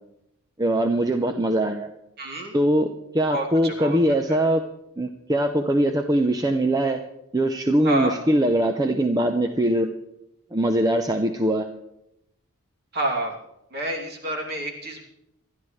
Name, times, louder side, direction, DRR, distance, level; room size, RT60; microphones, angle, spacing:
voice 1, 0.6-1.9 2.5-4.7 5.0-7.0 7.3-9.9 10.5-11.7, right 1 dB, 15° right, 6 dB, 0.7 m, -22 dB
voice 2, 2.2-2.5 3.3-4.0 7.8-8.2 12.9-13.3 13.7-15.0, right 1 dB, 45° right, 0 dB, 2.8 m, -28 dB
26.5 x 12.0 x 3.2 m, 0.83 s
head